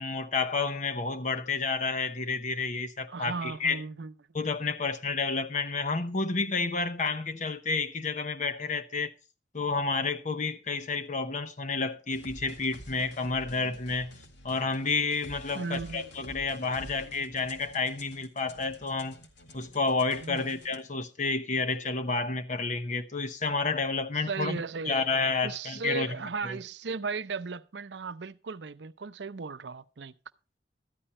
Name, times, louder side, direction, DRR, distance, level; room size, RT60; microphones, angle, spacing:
voice 1, 0.0-3.8 4.3-9.1 9.5-14.2 14.4-19.2 19.5-26.1 26.4-26.6, left 4 dB, 45° left, 1.0 m, -30 dB
voice 2, 3.1-4.1 15.5-17.0 20.2-20.5 24.3-25.1 25.4-30.1, right 4 dB, 75° right, 0.6 m, -36 dB
sound 1, 12.1-20.8, left 1 dB, 85° left, 2.1 m, -49 dB
13.5 x 10.0 x 4.3 m
head